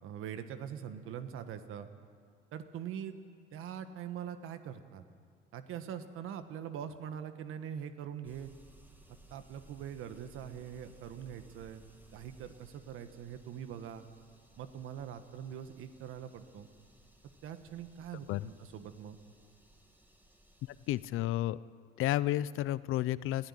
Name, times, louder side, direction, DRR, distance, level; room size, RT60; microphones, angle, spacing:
voice 1, 0.0-1.9 2.5-3.2 3.5-5.0 5.5-8.5 9.3-11.8 12.1-14.0 14.6-16.7 17.4-19.2, right 9 dB, 85° right, 9 dB, 1.3 m, -43 dB
sound 1, 8.2-21.1, right 1 dB, 10° right, 2.3 m, -61 dB
voice 2, 20.6-21.6 22.0-23.5, left 14 dB, 80° left, 18 dB, 0.6 m, -32 dB
20.5 x 13.5 x 10.0 m, 2.1 s
cardioid pair, 90°, 21 cm